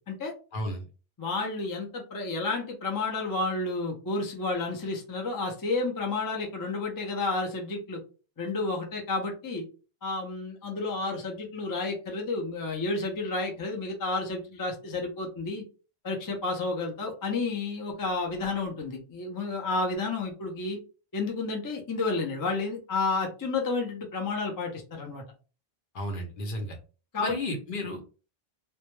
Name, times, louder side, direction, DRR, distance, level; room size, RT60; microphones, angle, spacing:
voice 1, 0.5-0.8 25.9-26.8 27.2-28.0, left 1 dB, 60° left, 3 dB, 0.8 m, -33 dB
voice 2, 1.2-8.0 8.4-9.6 10.0-15.6 16.0-20.8 21.1-25.2 27.1-27.4, left 3 dB, 30° left, 1 dB, 0.4 m, -31 dB
2.1 x 2.0 x 3.0 m, 0.35 s
omnidirectional pair, 1.1 m